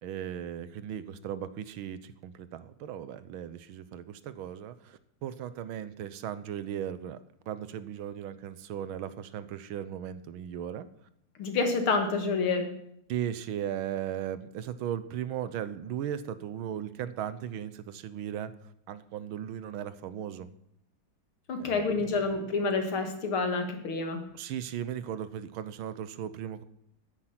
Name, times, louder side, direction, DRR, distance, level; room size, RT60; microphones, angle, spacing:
voice 1, 0.0-7.2 7.5-10.9 13.1-18.5 18.9-20.5 21.6-22.2 24.3-26.6, right 10 dB, 80° right, 14 dB, 1.6 m, -37 dB
voice 2, 11.4-12.7 21.5-24.2, left 4 dB, 90° left, 6 dB, 2.7 m, -28 dB
13.5 x 10.0 x 6.0 m, 0.75 s
omnidirectional pair, 2.3 m